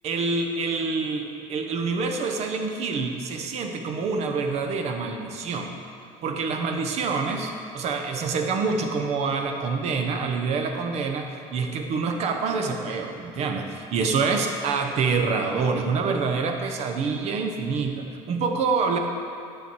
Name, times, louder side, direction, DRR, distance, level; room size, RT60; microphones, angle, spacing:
voice 1, 0.0-5.7 6.2-19.0, right 4 dB, 50° right, 4 dB, 1.0 m, -26 dB
9.0 x 6.9 x 4.6 m, 2.4 s
supercardioid pair, 115°, 14 cm